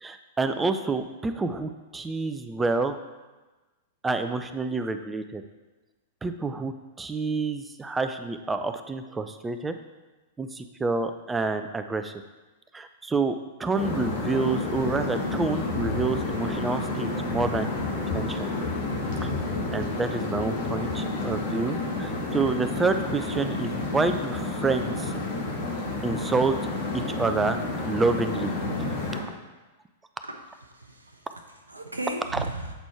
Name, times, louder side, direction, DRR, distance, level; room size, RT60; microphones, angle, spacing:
voice 1, 0.0-3.0 4.0-5.4 6.2-9.8 10.4-12.1 12.7-18.5 19.2-19.3 19.7-25.1 26.0-26.6 27.2-27.6 27.9-28.5, right 3 dB, 10° right, 9 dB, 0.5 m, -28 dB
sound 1, 13.7-29.2, left 2 dB, 55° left, 1.5 m, -30 dB
voice 2, 30.2-32.7, right 1 dB, 85° right, 3 dB, 0.7 m, -36 dB
8.1 x 4.3 x 4.4 m, 1.2 s
figure-of-eight pair, 100°, 0 cm